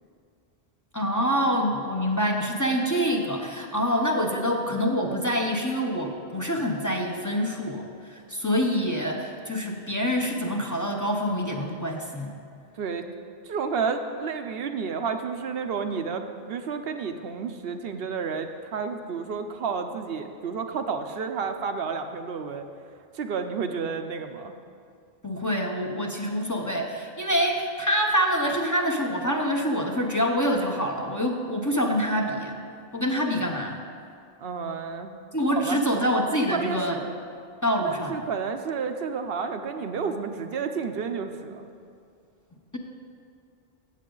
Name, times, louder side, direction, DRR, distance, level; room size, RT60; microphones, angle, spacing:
voice 1, 0.9-12.4 25.2-32.6 32.9-33.8 35.3-37.0 37.6-38.2, equal, 20° left, 0 dB, 0.8 m, -26 dB
voice 2, 12.7-13.1 13.4-22.7 23.1-24.5 34.4-35.2 35.5-35.8 36.5-37.0 37.8-41.7, right 5 dB, 75° right, 7 dB, 0.9 m, -31 dB
15.0 x 8.0 x 3.9 m, 2.3 s
omnidirectional pair, 1.0 m